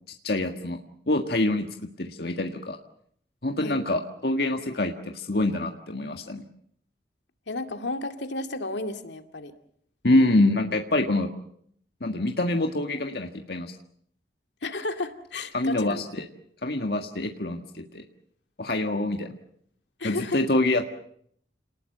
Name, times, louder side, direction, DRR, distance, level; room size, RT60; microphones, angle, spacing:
voice 1, 0.2-0.8 1.1-1.7 2.0-2.8 3.4-6.4 10.0-11.3 12.0-13.7 15.5-16.3 16.6-18.0 18.6-19.3 20.0-20.9, left 2 dB, 60° left, 4 dB, 1.7 m, -25 dB
voice 2, 7.5-9.5 14.6-16.0 20.0-20.4, left 2 dB, 80° left, 7 dB, 2.3 m, -32 dB
29.5 x 20.0 x 6.8 m, 0.66 s
head